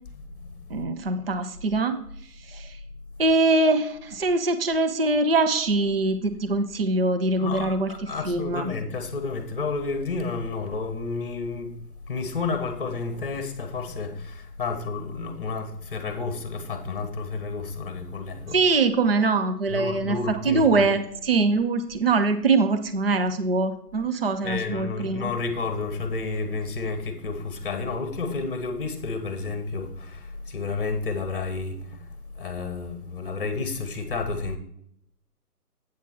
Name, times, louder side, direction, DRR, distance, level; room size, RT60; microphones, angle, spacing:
voice 1, 0.7-2.0 2.5-2.7 3.2-7.9 8.2-8.7 18.5-25.3, right 3 dB, 40° right, 0.5 m, -23 dB
voice 2, 7.4-11.8 12.1-18.6 19.7-20.9 24.4-32.0 32.3-34.6, left 4 dB, 35° left, 1.1 m, -31 dB
8.3 x 5.9 x 4.4 m
figure-of-eight pair, 155°, 48 cm